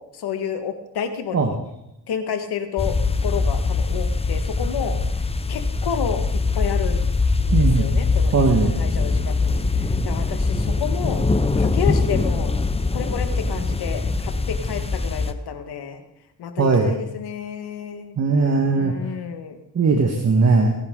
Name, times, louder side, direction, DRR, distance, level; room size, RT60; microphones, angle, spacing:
voice 1, 0.0-1.6 2.1-3.0 3.2-5.0 5.5-7.0 7.4-11.2 11.6-12.6 12.9-16.0 16.4-18.2 18.8-19.6, left 7 dB, 80° left, 6 dB, 2.0 m, -30 dB
sound 1, 2.8-15.3, left 3 dB, 15° left, 0.9 m, -22 dB
voice 2, 7.5-7.9 8.3-8.7 16.6-16.9 18.2-18.9 19.8-20.8, right 4 dB, 40° right, 2 dB, 1.8 m, -18 dB
27.0 x 11.0 x 4.0 m, 0.87 s
cardioid pair, 100°, 39 cm